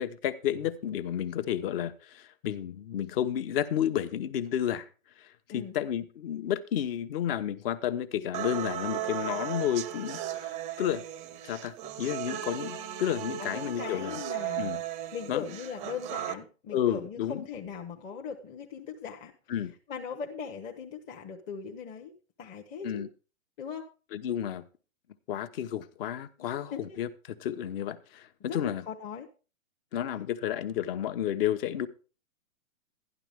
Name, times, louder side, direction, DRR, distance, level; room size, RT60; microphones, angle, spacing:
voice 1, 0.0-4.9 5.2-10.2 10.8-11.0 11.4-14.2 14.6-14.8 15.3-15.4 16.7-17.4 19.5-19.7 22.8-23.1 24.1-24.6 25.3-28.8 29.9-31.9, left 10 dB, 45° left, 1.0 m, -31 dB
sound 1, 8.3-16.3, right 12 dB, 15° right, 0.6 m, -36 dB
voice 2, 13.4-14.7 15.1-19.3 19.9-23.0 23.6-23.9 26.4-27.0 28.5-29.3, left 6 dB, 20° left, 0.8 m, -39 dB
12.0 x 11.0 x 3.5 m
hypercardioid pair, 130°, 40 cm